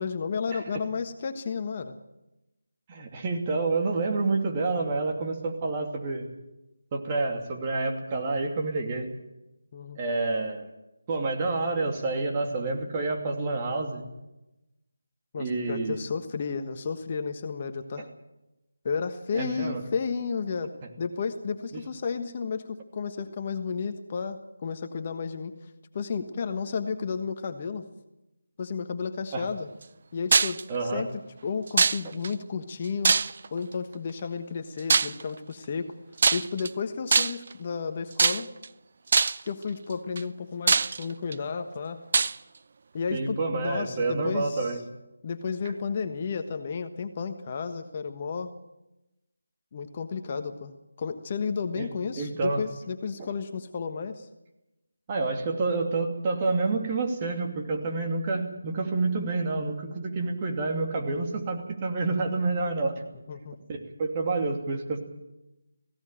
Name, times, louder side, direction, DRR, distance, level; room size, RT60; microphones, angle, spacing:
voice 1, 0.0-2.0 9.7-10.0 15.3-18.1 18.8-20.7 21.0-25.5 25.9-27.8 28.6-29.7 30.1-31.1 31.4-33.1 33.5-35.9 36.3-38.5 39.4-42.0 42.9-44.8 45.2-48.5 49.7-54.3 63.3-63.6, left 5 dB, 35° left, 7 dB, 1.3 m, -32 dB
voice 2, 2.9-6.3 6.9-9.1 10.0-10.7 11.1-14.0 15.4-16.0 19.3-19.8 21.7-21.8 29.3-29.4 30.7-31.1 43.1-44.8 51.7-51.9 52.2-52.6 53.2-53.3 55.1-62.9 63.7-65.0, right 3 dB, 25° right, 2 dB, 2.7 m, -28 dB
sound 1, 30.3-30.6 31.8-32.3 33.0-33.6 34.9-35.2 36.2-36.7 37.1-37.5 38.2-38.7 39.1-39.5 40.2-40.3 40.7-41.3 42.1-42.4, right 4 dB, 45° right, 0.6 m, -22 dB
18.0 x 17.0 x 9.0 m, 0.97 s
figure-of-eight pair, 165°, 0 cm